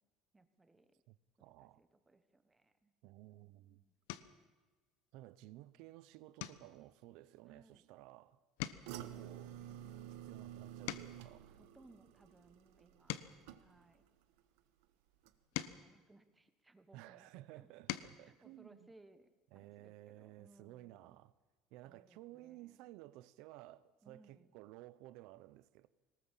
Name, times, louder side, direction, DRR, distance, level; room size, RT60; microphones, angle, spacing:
voice 1, 0.3-1.0 1.4-2.9 3.3-3.9 7.4-7.9 8.9-10.1 11.5-14.0 15.5-17.7 18.2-21.2 21.8-22.9 24.0-24.5, right 2 dB, 10° right, 1.1 m, -66 dB
voice 2, 1.1-1.8 3.0-3.8 5.1-8.4 8.8-9.6 10.1-11.6 16.9-18.9 19.5-21.3 21.7-25.9, right 16 dB, 60° right, 0.8 m, -56 dB
sound 1, 3.2-3.5 4.0-4.5 5.0-5.3 5.6-5.8 6.3-8.2 8.5-11.4 12.0-14.5 15.1-17.0 17.5-18.2 19.6-19.7 20.0-20.2, left 14 dB, 80° left, 1.1 m, -48 dB
sound 2, 8.9-14.1 14.4-14.8 15.2-15.3, right 11 dB, 90° right, 1.4 m, -51 dB
22.0 x 19.5 x 7.4 m
cardioid pair, 180°, 0 cm